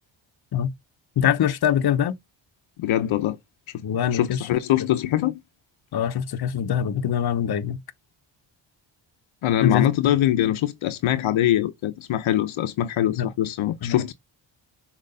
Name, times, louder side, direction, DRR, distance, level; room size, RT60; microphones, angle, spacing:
voice 1, 1.2-2.2 3.8-4.5 5.9-7.8 9.6-10.1 13.1-13.3 13.8-14.0, left 9 dB, 55° left, 0.8 m, -23 dB
voice 2, 2.8-3.4 4.1-5.4 9.4-14.1, left 12 dB, 85° left, 0.7 m, -23 dB
6.5 x 3.0 x 5.5 m
cardioid pair, 100°, 47 cm